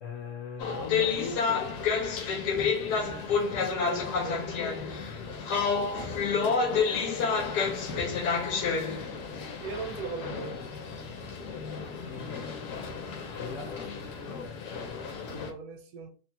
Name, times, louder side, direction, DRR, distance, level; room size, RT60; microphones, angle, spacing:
voice 1, 0.0-1.8 6.3-6.6 12.1-12.5 13.4-14.6, left 5 dB, 60° left, 0.9 m, -41 dB
sound 1, 0.6-15.5, left 5 dB, 90° left, 1.2 m, -30 dB
voice 2, 2.9-3.3 3.6-4.5 7.9-8.5 9.6-10.6 15.3-16.1, right 5 dB, 70° right, 0.9 m, -40 dB
3.2 x 2.2 x 2.8 m
omnidirectional pair, 1.7 m